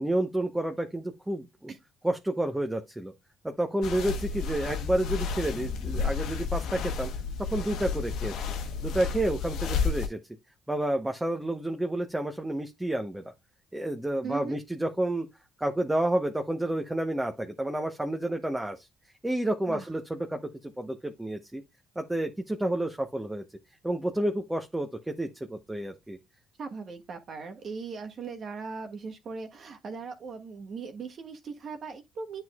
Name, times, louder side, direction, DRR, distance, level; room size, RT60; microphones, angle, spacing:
voice 1, 0.0-1.7 2.0-3.1 3.4-7.1 7.4-8.3 8.8-10.2 10.7-13.3 13.7-15.3 15.6-18.9 19.2-21.6 22.0-23.4 23.8-26.2, right 1 dB, 10° right, 1.0 m, -30 dB
sound 1, 3.8-10.1, left 5 dB, 70° left, 1.2 m, -31 dB
voice 2, 14.2-14.6 19.7-19.9 26.6-32.4, right 5 dB, 50° right, 1.3 m, -39 dB
9.4 x 4.5 x 2.4 m
hypercardioid pair, 60°, 0 cm